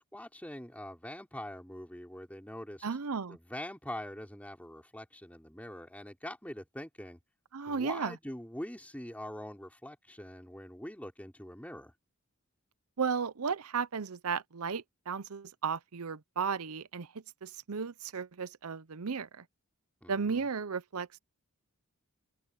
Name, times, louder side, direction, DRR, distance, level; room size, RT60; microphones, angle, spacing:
voice 1, 0.0-2.9 3.3-7.2 7.7-11.9 20.0-20.4, left 1 dB, 5° left, 4.1 m, -44 dB
voice 2, 2.8-3.4 7.5-8.2 13.0-19.4 20.1-21.2, right 5 dB, 80° right, 0.7 m, -34 dB
open air
head